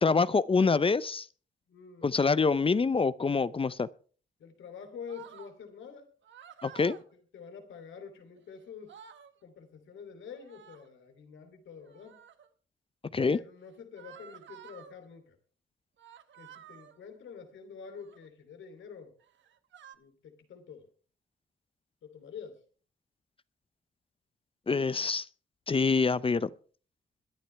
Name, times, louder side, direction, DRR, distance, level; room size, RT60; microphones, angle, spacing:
voice 1, 0.0-1.3 2.0-3.9 6.6-7.0 13.1-13.4 24.7-25.3 25.7-26.5, left 4 dB, 30° left, 0.6 m, -26 dB
voice 2, 1.7-2.1 4.4-6.1 6.9-9.0 9.4-12.2 13.3-15.4 16.3-19.1 19.9-20.9 22.0-22.6, left 6 dB, 85° left, 3.0 m, -47 dB
sound 1, 5.1-5.5 6.2-7.0 8.4-8.5 8.7-9.3 10.4-10.9 11.8-12.5 14.0-14.9 16.0-17.0 17.9-18.3 19.2-19.9, right 9 dB, 75° right, 1.2 m, -52 dB
22.0 x 11.0 x 3.4 m
cardioid pair, 75°, 19 cm